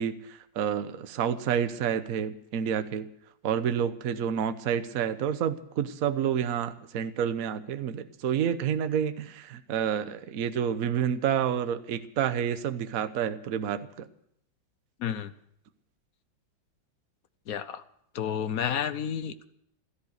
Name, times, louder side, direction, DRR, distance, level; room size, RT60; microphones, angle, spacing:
voice 1, 0.0-3.1 3.4-14.1, right 8 dB, 55° right, 11 dB, 1.2 m, -29 dB
voice 2, 15.0-15.3 17.5-17.8 18.1-19.5, left 8 dB, 60° left, 12 dB, 1.0 m, -31 dB
16.5 x 13.5 x 6.6 m, 0.71 s
omnidirectional pair, 2.2 m